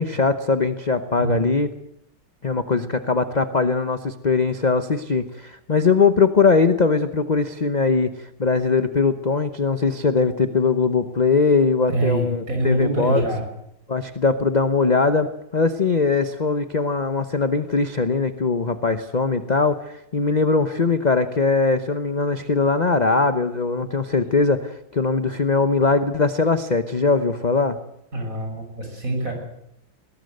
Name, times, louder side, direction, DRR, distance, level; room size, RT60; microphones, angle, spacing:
voice 1, 0.0-1.7 2.4-13.2 13.9-27.8, left 4 dB, 35° left, 10 dB, 0.6 m, -21 dB
voice 2, 11.9-13.4 28.1-29.3, right 1 dB, 40° right, 3 dB, 6.6 m, -25 dB
21.0 x 18.5 x 7.9 m, 0.79 s
omnidirectional pair, 2.2 m